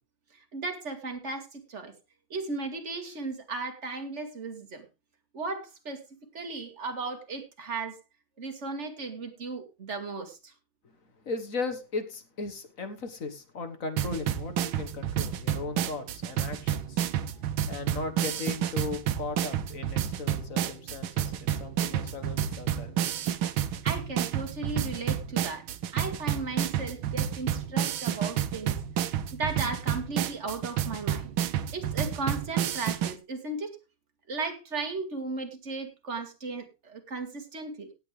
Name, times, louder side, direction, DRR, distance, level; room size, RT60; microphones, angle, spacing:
voice 1, 0.5-1.9 2.3-4.9 5.3-6.0 6.3-8.0 8.4-10.5 23.8-25.7 25.9-28.8 29.3-31.3 31.7-33.8 34.3-37.9, right 3 dB, 35° right, 4 dB, 2.2 m, -35 dB
voice 2, 11.2-17.0 17.7-23.2, left 3 dB, 45° left, 8 dB, 1.6 m, -37 dB
sound 1, 14.0-33.1, right 10 dB, 80° right, 1.6 m, -30 dB
17.5 x 8.2 x 3.3 m, 0.27 s
omnidirectional pair, 2.3 m